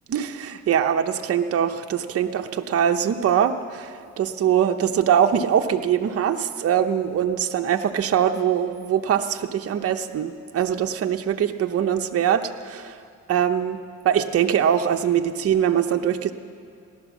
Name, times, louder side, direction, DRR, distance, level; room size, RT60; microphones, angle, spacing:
voice 1, 0.1-13.0 13.3-16.3, right 9 dB, 50° right, 5 dB, 0.8 m, -22 dB
16.5 x 12.0 x 7.2 m, 2.4 s
cardioid pair, 90°, 30 cm